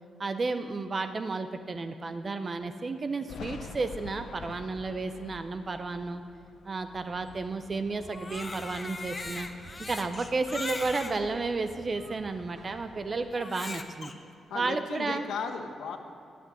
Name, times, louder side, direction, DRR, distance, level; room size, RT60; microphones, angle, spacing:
voice 1, 0.2-6.2 6.6-9.5 9.8-14.1 14.5-15.3, right 3 dB, 30° right, 9 dB, 0.5 m, -32 dB
Thunder, 3.3-8.7 9.1-10.5 10.8-12.5, left 4 dB, 70° left, 0.8 m, -48 dB
sound 1, 7.0-13.3, right 2 dB, 50° right, 1.7 m, -52 dB
Crying sobbing, 8.0-11.2 11.9-12.0 13.3-14.1, left 3 dB, 20° left, 0.7 m, -39 dB
voice 2, 14.5-16.0, left 5 dB, 85° left, 5 dB, 1.0 m, -35 dB
11.5 x 6.8 x 9.8 m, 2.8 s
wide cardioid pair, 165°, 0 cm